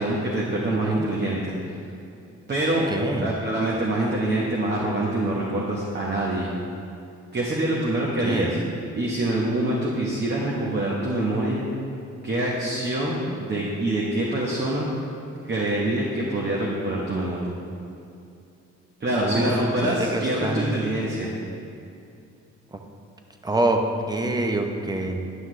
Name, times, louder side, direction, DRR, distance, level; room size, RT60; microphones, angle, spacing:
voice 1, 0.0-1.5 2.5-2.9 3.1-6.5 7.3-8.6 8.9-11.6 12.2-14.9 15.4-17.5 19.0-21.3, right 1 dB, 35° right, -4 dB, 1.2 m, -25 dB
voice 2, 2.9-3.3 8.2-8.5 19.2-19.6 19.8-20.7 23.4-23.8 24.1-25.2, right 2 dB, 15° right, 3 dB, 0.8 m, -25 dB
11.0 x 5.7 x 3.3 m, 2.6 s
cardioid pair, 90°, 30 cm